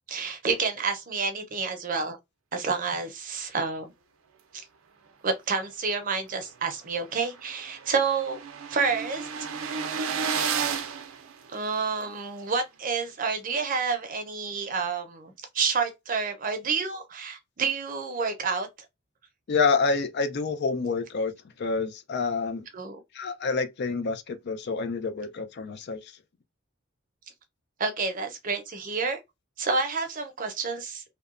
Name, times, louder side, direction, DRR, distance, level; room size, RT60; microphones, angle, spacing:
voice 1, 0.1-2.2 2.5-3.9 4.5-4.6 5.2-8.4 8.7-9.3 9.6-9.9 11.5-18.7 22.7-23.0 27.8-29.2 29.6-31.0, right 4 dB, 40° right, 0.6 m, -29 dB
sound 1, 6.5-6.6 6.9-7.0 7.1-12.0, right 6 dB, 90° right, 0.4 m, -32 dB
voice 2, 19.5-21.3 21.6-22.7 23.1-26.1, left 4 dB, 55° left, 0.4 m, -27 dB
2.8 x 2.1 x 2.4 m
head